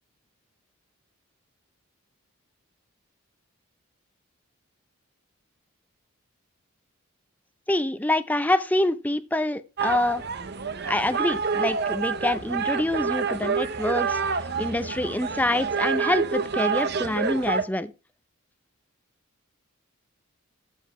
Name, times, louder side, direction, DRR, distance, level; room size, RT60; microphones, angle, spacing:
voice 1, 7.7-10.2 10.8-17.9, left 1 dB, 5° left, 0.5 m, -26 dB
sound 1, 9.8-17.6, right 5 dB, 50° right, 0.6 m, -28 dB
10.5 x 7.2 x 4.3 m
head